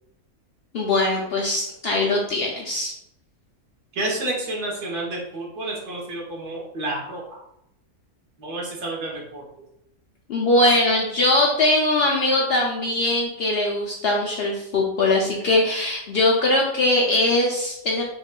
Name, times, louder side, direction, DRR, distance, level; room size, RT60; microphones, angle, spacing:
voice 1, 0.7-2.9 10.3-18.0, left 2 dB, 75° left, -2 dB, 0.5 m, -21 dB
voice 2, 3.9-7.4 8.4-9.4, right 2 dB, 55° right, -3 dB, 1.2 m, -30 dB
5.2 x 2.3 x 2.2 m, 0.79 s
omnidirectional pair, 1.5 m